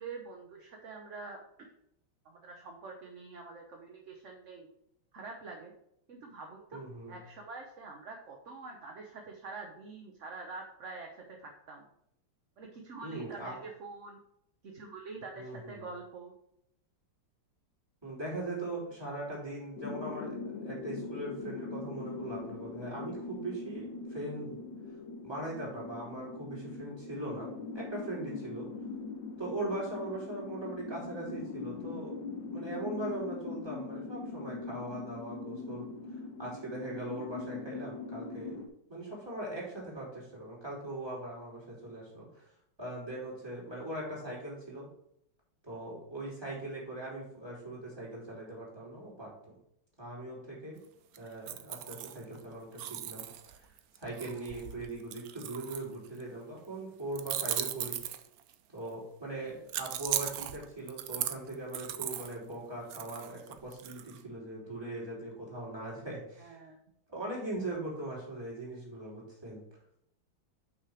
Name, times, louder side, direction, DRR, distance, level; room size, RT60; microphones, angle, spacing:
voice 1, 0.0-1.4 2.2-4.7 5.1-5.7 6.1-6.8 7.1-11.8 12.6-14.2 14.6-16.3 66.4-66.8, right 3 dB, 50° right, 1 dB, 1.0 m, -46 dB
voice 2, 6.7-7.2 13.0-13.6 15.3-15.8 18.0-20.3 20.6-24.6 25.2-27.5 27.7-28.7 29.4-32.1 32.5-35.9 36.4-38.6 38.9-42.5 42.8-44.9 45.6-49.3 50.0-50.8 51.2-53.3 53.6-53.7 53.9-58.0 58.7-66.6 67.1-69.6, right 2 dB, 10° right, -6 dB, 3.2 m, -40 dB
sound 1, 19.8-38.7, left 4 dB, 70° left, 1.6 m, -41 dB
sound 2, 51.1-52.4 52.8-56.2 57.1-58.5 59.7-62.4 62.9-64.2, right 11 dB, 75° right, 0.8 m, -37 dB
6.1 x 5.9 x 4.9 m, 0.75 s
omnidirectional pair, 2.1 m